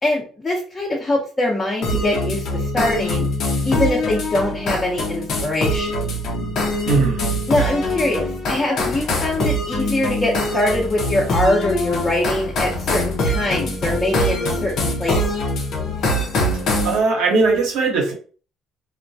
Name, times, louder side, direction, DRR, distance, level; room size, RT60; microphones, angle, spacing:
voice 1, 0.0-3.3 3.6-5.9 7.5-15.2, left 1 dB, 30° left, -3 dB, 0.7 m, -23 dB
sound 1, 1.8-17.0, left 1 dB, 65° left, 0.7 m, -23 dB
voice 2, 6.8-7.3 16.8-18.1, right 3 dB, 80° right, 0 dB, 0.8 m, -19 dB
2.2 x 2.2 x 2.6 m, 0.40 s
supercardioid pair, 70°, 0 cm